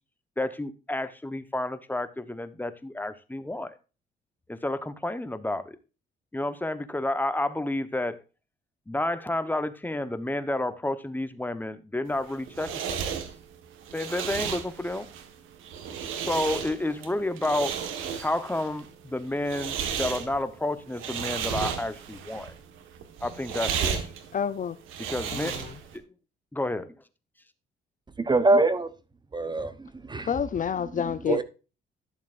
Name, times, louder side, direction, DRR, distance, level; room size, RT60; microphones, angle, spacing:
voice 1, 0.4-3.8 4.5-5.8 6.3-8.2 8.9-13.1 13.9-15.1 16.3-17.8 18.2-22.5 23.2-24.1 25.1-25.6 25.9-26.0 26.5-27.0, left 1 dB, 10° left, 1.0 m, -30 dB
sound 1, 12.1-26.0, right 7 dB, 90° right, 1.4 m, -34 dB
voice 2, 24.3-24.8 25.3-25.8 30.2-31.4, left 7 dB, 40° left, 0.5 m, -29 dB
voice 3, 28.2-28.9 29.3-30.3 31.3-31.4, right 2 dB, 20° right, 0.9 m, -24 dB
11.0 x 7.2 x 2.5 m
cardioid pair, 90°, 20 cm